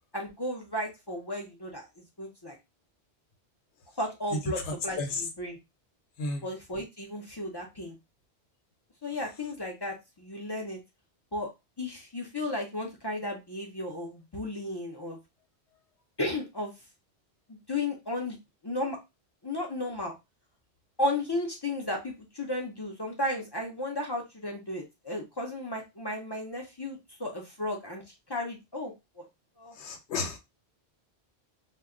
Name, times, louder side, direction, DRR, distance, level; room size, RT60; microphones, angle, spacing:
voice 1, 0.1-1.9 2.2-2.6 4.0-5.6 6.4-8.0 9.0-10.8 11.3-11.5 11.8-15.2 16.2-16.7 17.5-18.4 18.6-19.0 19.4-20.1 21.0-28.0 28.3-29.2 29.6-29.8, left 1 dB, 40° left, 0.3 m, -34 dB
voice 2, 29.8-30.4, left 3 dB, 85° left, 1.0 m, -32 dB
2.1 x 2.1 x 3.6 m
omnidirectional pair, 1.1 m